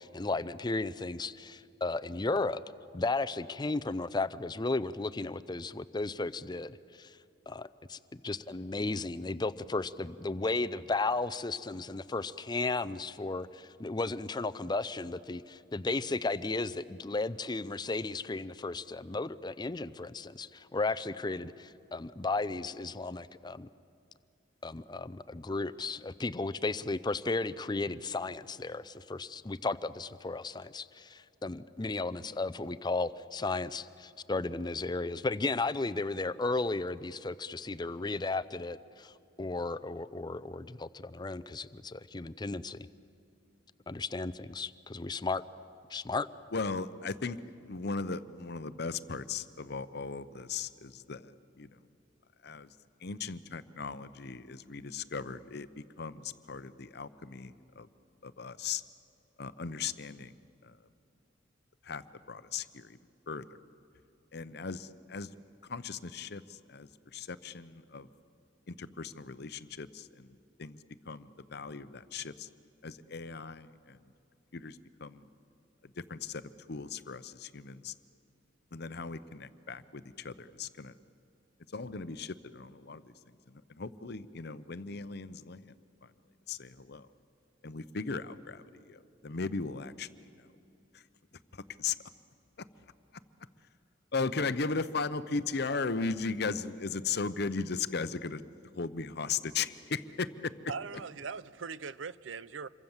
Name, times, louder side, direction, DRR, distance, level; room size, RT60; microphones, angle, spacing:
voice 1, 0.0-2.6 2.9-7.2 7.5-23.7 24.6-39.1 39.4-42.9 43.9-45.4 45.9-46.3, left 3 dB, 20° left, 0.5 m, -34 dB
voice 2, 46.5-47.4 47.6-51.3 51.6-51.7 52.4-52.7 53.0-57.9 58.2-58.8 59.4-60.3 60.6-60.7 61.8-63.0 63.3-63.6 64.3-65.3 65.7-68.1 68.7-70.3 70.6-70.8 71.1-72.5 72.8-74.0 74.5-75.2 76.1-76.4 76.7-77.9 78.7-80.9 81.7-83.1 83.8-85.7 86.5-87.1 87.6-90.1 91.5-91.9 94.1-98.4 98.7-100.5, left 4 dB, 55° left, 0.8 m, -37 dB
voice 3, 100.7-102.7, right 5 dB, 80° right, 0.6 m, -40 dB
27.0 x 23.5 x 7.3 m
head